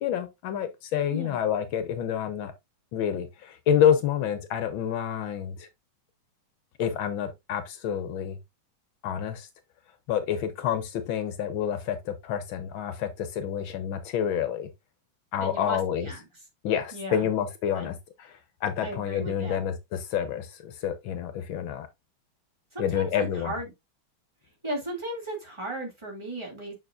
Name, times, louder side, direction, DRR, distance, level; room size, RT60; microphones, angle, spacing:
voice 1, 0.0-2.5 2.9-5.7 6.8-8.4 9.0-9.5 10.1-14.7 15.3-16.1 16.6-21.9 22.8-23.5, left 9 dB, 75° left, 1.6 m, -28 dB
voice 2, 15.4-16.2 16.9-17.3 17.7-17.9 18.8-19.6 22.7-23.7 24.6-26.7, right 1 dB, 15° right, 2.5 m, -35 dB
6.7 x 6.6 x 2.5 m
omnidirectional pair, 2.2 m